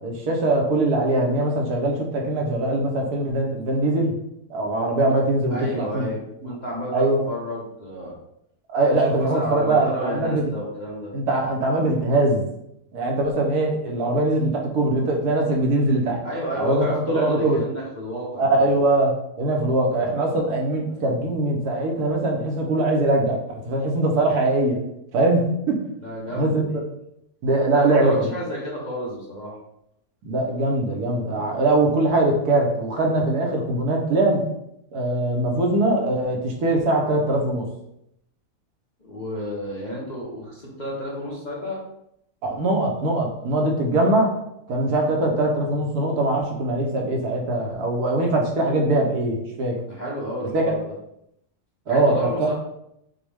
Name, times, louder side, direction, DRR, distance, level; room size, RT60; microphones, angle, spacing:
voice 1, 0.0-4.1 4.5-6.1 6.9-7.3 8.7-10.4 11.1-12.4 12.9-16.2 16.6-17.6 18.4-19.1 19.4-24.8 25.1-25.4 25.7-25.8 26.4-26.7 27.4-28.1 30.2-34.4 34.9-37.7 42.4-44.3 44.7-49.8 50.5-50.6 51.9-52.3, right 2 dB, 70° right, 0 dB, 1.4 m, -22 dB
voice 2, 5.5-8.1 9.0-11.1 16.2-18.7 25.9-26.8 27.7-29.5 39.0-41.8 49.9-50.9 51.9-52.6, equal, 30° left, -5 dB, 1.0 m, -31 dB
6.1 x 2.4 x 3.4 m, 0.78 s
omnidirectional pair, 1.7 m